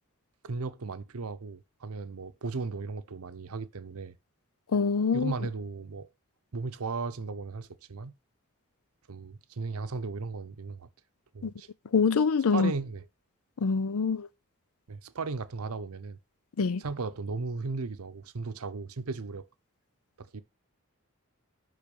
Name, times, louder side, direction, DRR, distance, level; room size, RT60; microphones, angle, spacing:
voice 1, 0.4-4.2 5.1-6.1 6.5-8.1 9.1-10.9 11.3-11.7 12.5-13.0 14.9-16.2 16.8-19.5 20.2-20.4, right 4 dB, 80° right, 0.7 m, -36 dB
voice 2, 4.7-5.3 11.4-11.5 11.9-12.7 13.6-14.3 16.6-16.8, left 5 dB, 80° left, 0.5 m, -25 dB
10.5 x 3.8 x 5.3 m
head